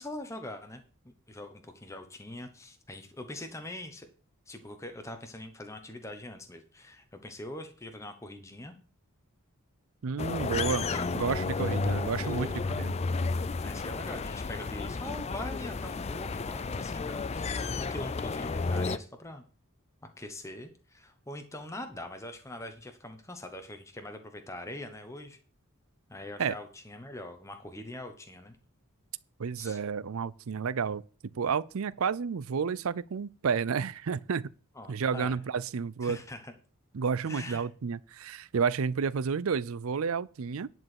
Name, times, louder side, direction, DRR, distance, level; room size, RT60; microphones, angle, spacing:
voice 1, 0.0-4.1 4.5-8.8 10.5-11.1 11.9-12.9 13.6-19.4 20.0-25.4 26.1-28.6 29.6-29.8 34.7-35.4 36.0-36.5 37.3-37.7, left 1 dB, 15° left, 1.0 m, -43 dB
voice 2, 10.0-10.8 11.1-12.5 12.8-12.9 26.4-26.5 29.4-31.0 31.3-34.5 34.9-36.2 36.9-40.7, right 6 dB, 70° right, 0.5 m, -31 dB
sound 1, 10.2-19.0, left 4 dB, 30° left, 0.4 m, -32 dB
10.5 x 4.6 x 7.9 m
head